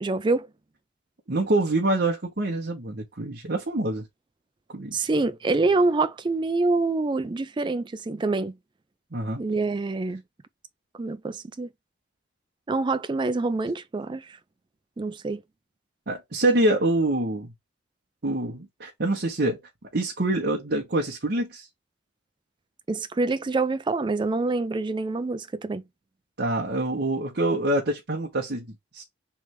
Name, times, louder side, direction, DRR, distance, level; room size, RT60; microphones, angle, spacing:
voice 1, 0.0-0.5 4.9-8.5 9.4-10.2 11.0-11.7 12.7-14.4 15.0-15.4 22.9-25.8, right 3 dB, 25° right, 0.3 m, -26 dB
voice 2, 1.3-4.0 4.7-4.9 9.1-9.4 16.1-17.5 18.2-19.6 19.9-21.7 26.4-28.7 28.9-29.0, right 1 dB, 55° right, 1.1 m, -25 dB
3.4 x 3.2 x 3.0 m
head